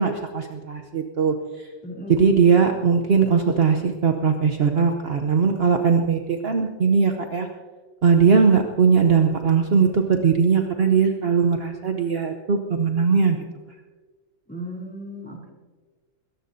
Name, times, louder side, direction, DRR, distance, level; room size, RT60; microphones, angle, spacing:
voice 1, 0.0-1.7 2.1-7.5 8.0-13.4, right 6 dB, 55° right, 4 dB, 0.7 m, -20 dB
voice 2, 1.8-2.4 14.5-15.5, right 1 dB, 5° left, -2 dB, 3.1 m, -35 dB
21.5 x 18.0 x 2.7 m, 1.4 s
omnidirectional pair, 2.1 m